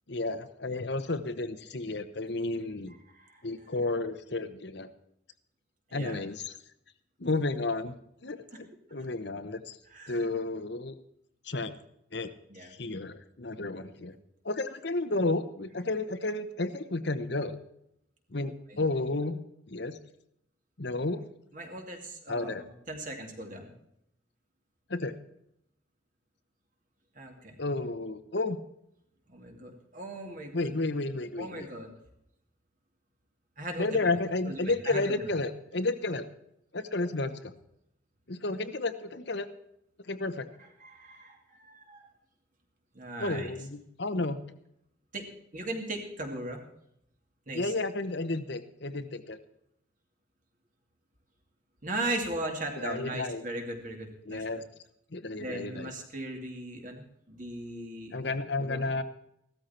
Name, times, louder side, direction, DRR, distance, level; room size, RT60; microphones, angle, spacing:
voice 1, 0.1-2.9 3.4-4.9 5.9-6.5 7.2-7.9 8.2-9.8 10.1-11.0 11.5-11.7 12.1-12.3 12.8-14.1 14.4-17.6 18.3-19.4 19.7-20.0 20.8-21.2 22.3-22.6 24.9-25.1 27.6-28.6 30.5-31.7 33.8-36.3 36.7-37.5 38.3-39.5 40.1-40.5 43.2-44.4 47.5-49.4 52.8-53.4 54.3-54.6 55.1-55.9 58.1-59.0, left 2 dB, 55° left, 11 dB, 1.0 m, -32 dB
voice 2, 5.9-6.3 9.9-10.2 12.5-12.8 18.4-18.8 21.5-23.7 27.2-27.6 29.3-30.7 31.4-31.9 33.6-34.1 34.5-35.3 40.8-42.1 42.9-43.5 45.1-46.6 47.5-47.7 51.8-54.6 55.4-58.3 58.6-58.8, right 1 dB, 40° right, 3 dB, 2.6 m, -38 dB
16.0 x 13.0 x 4.4 m, 0.76 s
head